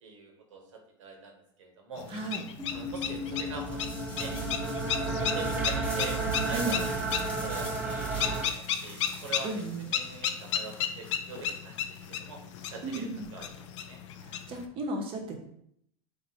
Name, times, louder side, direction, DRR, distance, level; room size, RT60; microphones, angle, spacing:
voice 1, 0.0-1.3 1.6-2.1 2.7-3.8 4.2-4.3 5.0-6.2 6.4-6.8 7.4-9.5 9.8-11.8 12.1-12.4 12.7-14.0, right 4 dB, 90° right, 2 dB, 1.0 m, -43 dB
sound 1, 2.0-14.7, left 8 dB, 75° left, 0.4 m, -35 dB
voice 2, 2.1-2.4 6.5-6.9 9.4-9.9 12.8-13.3 14.2-15.4, right 2 dB, 35° right, 3 dB, 0.8 m, -35 dB
sound 2, 2.6-8.5, right 3 dB, 10° right, 0.4 m, -32 dB
sound 3, 3.6-13.4, left 1 dB, 10° left, 0.9 m, -46 dB
4.2 x 2.6 x 2.8 m, 0.72 s
supercardioid pair, 125°, 16 cm